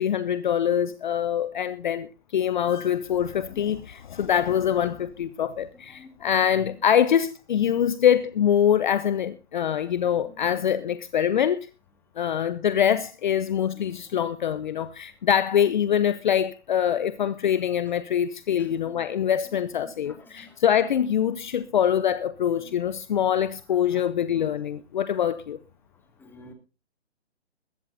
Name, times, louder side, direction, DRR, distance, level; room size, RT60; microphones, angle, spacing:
voice 1, 0.0-11.7 12.2-25.6, left 9 dB, 45° left, 0.9 m, -24 dB
voice 2, 2.5-2.9 3.3-3.6 5.7-6.8 10.2-10.6 13.7-14.1 14.8-14.9 18.6-20.6 22.6-22.8 23.8-24.6 26.2-26.5, left 3 dB, 5° left, 2.6 m, -51 dB
21.5 x 11.5 x 2.7 m
hypercardioid pair, 150°, 34 cm